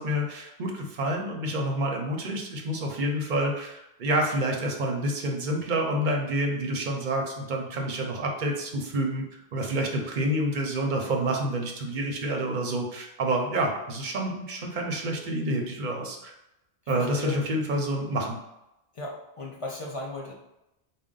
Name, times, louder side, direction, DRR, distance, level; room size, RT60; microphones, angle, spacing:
voice 1, 0.0-9.2 9.5-16.3 16.9-18.4, right 1 dB, 55° right, 1 dB, 0.7 m, -28 dB
voice 2, 16.9-17.4 18.9-20.3, left 2 dB, 45° left, -2 dB, 0.4 m, -36 dB
3.6 x 2.2 x 3.8 m, 0.90 s
omnidirectional pair, 1.1 m